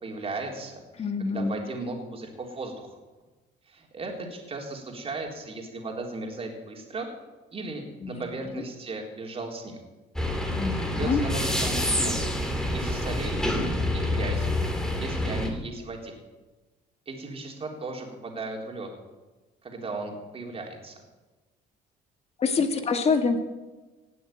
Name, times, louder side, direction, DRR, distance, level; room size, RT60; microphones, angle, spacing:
voice 1, 0.0-0.8 1.2-2.9 3.7-7.1 7.5-9.8 10.9-12.3 12.7-13.4 13.9-14.6 15.0-16.1 17.1-18.9 19.6-20.9, right 3 dB, 35° right, 2 dB, 3.9 m, -36 dB
voice 2, 1.0-1.6 8.0-8.3 10.5-11.2 22.4-23.4, left 4 dB, 40° left, 6 dB, 2.0 m, -26 dB
sound 1, 10.2-15.5, left 1 dB, 5° left, 2.8 m, -27 dB
18.5 x 7.7 x 9.0 m, 1.2 s
cardioid pair, 110°, 17 cm